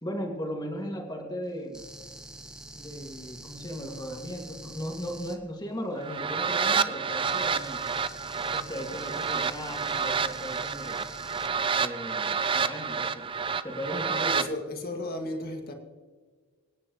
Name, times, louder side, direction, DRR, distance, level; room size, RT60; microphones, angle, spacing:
voice 1, 0.0-1.8 2.7-8.1 8.5-11.1 11.7-13.3 13.6-14.5, equal, 20° left, 2 dB, 2.0 m, -37 dB
sound 1, 1.7-5.4 7.2-11.5, right 1 dB, 5° right, 0.8 m, -45 dB
sound 2, 6.0-14.5, right 5 dB, 20° right, 0.4 m, -29 dB
voice 2, 14.3-15.7, left 1 dB, 45° left, 3 dB, 2.0 m, -34 dB
24.5 x 10.5 x 3.0 m, 1.5 s
head